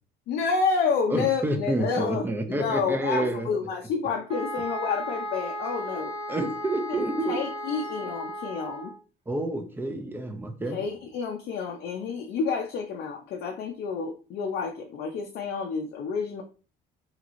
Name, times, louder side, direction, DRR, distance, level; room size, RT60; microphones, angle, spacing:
voice 1, 0.3-6.1 7.3-8.9 10.7-16.4, left 5 dB, 70° left, 2 dB, 0.5 m, -29 dB
voice 2, 1.1-3.5 6.3-7.4 9.3-10.8, right 1 dB, 10° right, 6 dB, 0.6 m, -29 dB
sound 1, 4.3-9.0, equal, 35° right, 1.0 m, -35 dB
2.9 x 2.8 x 2.5 m, 0.38 s
cardioid pair, 110°, 17 cm